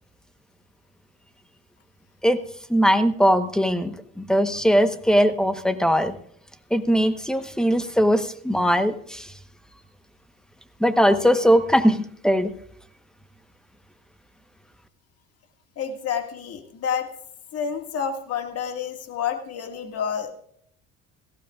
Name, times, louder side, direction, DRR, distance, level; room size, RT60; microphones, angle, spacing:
voice 1, 2.7-6.2 6.7-9.3 10.8-12.5, equal, ahead, 10 dB, 1.0 m, -20 dB
voice 2, 15.8-17.1 17.5-20.3, left 7 dB, 45° left, 5 dB, 1.9 m, -29 dB
17.5 x 15.5 x 2.4 m, 0.65 s
supercardioid pair, 105°, 32 cm